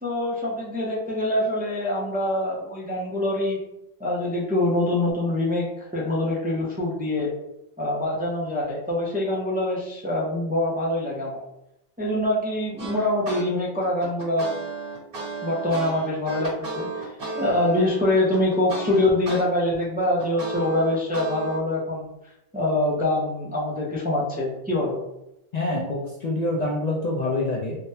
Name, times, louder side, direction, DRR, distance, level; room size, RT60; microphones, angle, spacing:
voice 1, 0.0-3.6 4.0-5.7 5.9-7.3 7.8-11.4 12.0-14.5 15.4-17.1 17.3-22.1 22.5-25.0, left 1 dB, 15° right, -5 dB, 0.4 m, -24 dB
sound 1, 12.8-13.4 13.8-19.4 19.8-21.6, right 3 dB, 60° right, 1.4 m, -34 dB
voice 2, 25.5-27.8, left 2 dB, 50° left, -3 dB, 0.5 m, -26 dB
3.5 x 2.1 x 2.7 m, 0.87 s
omnidirectional pair, 1.1 m